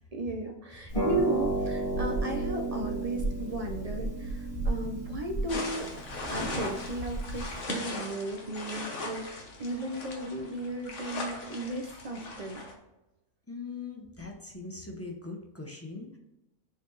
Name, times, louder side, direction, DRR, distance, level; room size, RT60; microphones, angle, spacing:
voice 1, 0.1-5.9 6.3-12.6, right 2 dB, 50° right, 3 dB, 0.4 m, -35 dB
Harp, 0.9-7.6, right 2 dB, 35° left, 2.4 m, -32 dB
sound 1, 5.5-12.7, left 2 dB, 55° left, 1.4 m, -39 dB
voice 2, 13.5-16.2, left 3 dB, 10° left, 0 dB, 0.7 m, -41 dB
7.2 x 4.1 x 3.2 m, 0.95 s
omnidirectional pair, 1.6 m